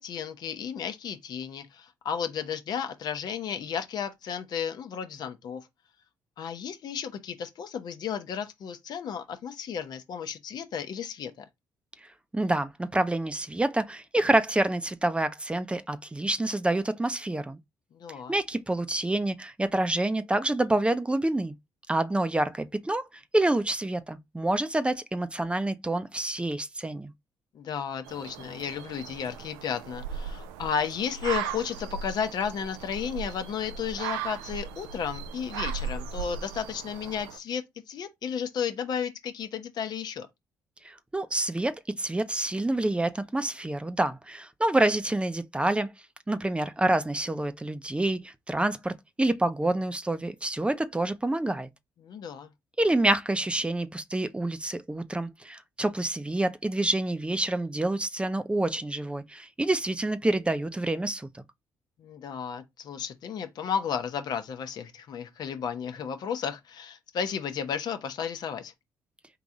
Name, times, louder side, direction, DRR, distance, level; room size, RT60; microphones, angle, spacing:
voice 1, 0.0-5.6 6.4-11.4 17.9-18.3 27.5-40.3 52.0-52.5 62.0-68.7, left 7 dB, 65° left, 0.8 m, -33 dB
voice 2, 12.3-17.6 18.3-21.5 21.9-23.0 23.3-27.1 40.8-45.9 46.3-51.7 52.8-61.3, right 2 dB, 15° right, 0.7 m, -27 dB
sound 1, 28.1-37.4, right 7 dB, 90° right, 0.4 m, -37 dB
3.9 x 2.9 x 3.6 m
hypercardioid pair, 55°, 8 cm